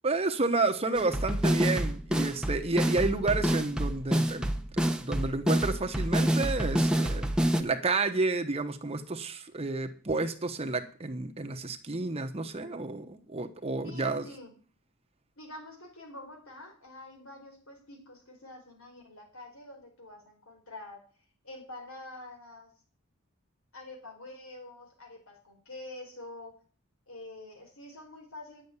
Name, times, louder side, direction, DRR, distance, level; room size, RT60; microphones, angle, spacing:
voice 1, 0.0-7.3 7.6-14.2, right 3 dB, 30° right, 6 dB, 1.0 m, -30 dB
sound 1, 1.0-7.6, right 1 dB, 5° right, 0.9 m, -28 dB
voice 2, 13.8-14.6 15.4-21.0 21.4-22.7 23.7-26.5 27.1-28.6, left 2 dB, 75° left, 2 dB, 4.8 m, -46 dB
10.0 x 7.2 x 8.2 m, 0.40 s
head